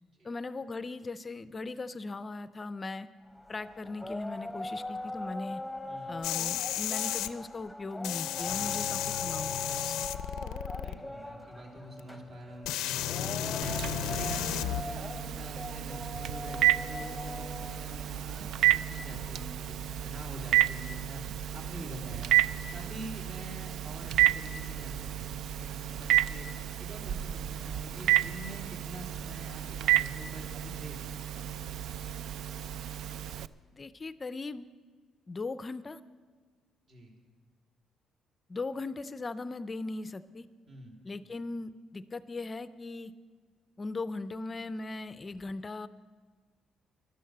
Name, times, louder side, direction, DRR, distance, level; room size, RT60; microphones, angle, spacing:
voice 1, 0.2-3.1 3.5-5.6 6.1-10.1 33.7-34.7 35.3-36.0 38.5-40.5 41.0-43.1 43.8-45.9, left 3 dB, 30° left, 14 dB, 0.4 m, -39 dB
sound 1, 3.3-19.6, left 1 dB, ahead, 1.0 m, -41 dB
voice 2, 5.9-6.2 10.2-10.5 10.8-13.8 14.1-22.3 22.7-26.5 26.8-31.5 36.9-37.1 40.7-41.0, right 1 dB, 55° right, 0 dB, 3.6 m, -46 dB
sound 2, 6.2-7.3 8.0-11.0 12.0-12.1 12.7-14.8 16.5-16.6, left 12 dB, 90° left, 0.5 m, -33 dB
Telephone, 13.6-33.5, right 13 dB, 75° right, 0.4 m, -31 dB
12.0 x 11.5 x 7.8 m, 1.5 s
cardioid pair, 90°, 0 cm